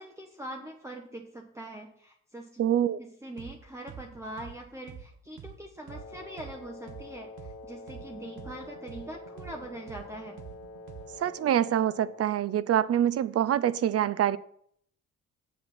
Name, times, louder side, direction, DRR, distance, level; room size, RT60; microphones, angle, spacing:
voice 1, 0.0-2.6 3.0-10.4, right 1 dB, 10° right, 1.2 m, -43 dB
voice 2, 2.6-3.0 11.2-14.4, right 10 dB, 50° right, 0.6 m, -25 dB
sound 1, 3.4-3.6 3.9-7.6 7.9-11.3, right 8 dB, 70° right, 1.6 m, -46 dB
Wind instrument woodwind instrument, 5.9-12.3, left 2 dB, 45° left, 1.9 m, -46 dB
8.0 x 7.7 x 5.8 m
cardioid pair, 90°, 30 cm